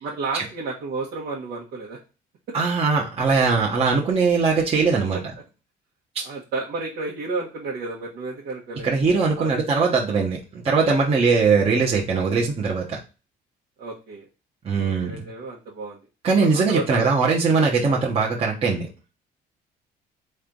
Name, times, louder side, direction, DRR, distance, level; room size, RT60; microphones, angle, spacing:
voice 1, 0.0-2.0 5.1-5.2 6.2-8.9 9.4-9.8 13.8-14.2 14.7-16.0 16.4-17.2, right 3 dB, 70° right, -4 dB, 1.2 m, -32 dB
voice 2, 2.5-5.2 6.1-6.2 8.8-13.0 14.6-15.2 16.2-18.9, right 4 dB, 35° right, -3 dB, 1.0 m, -21 dB
4.2 x 3.3 x 3.8 m, 0.31 s
cardioid pair, 110°, 17 cm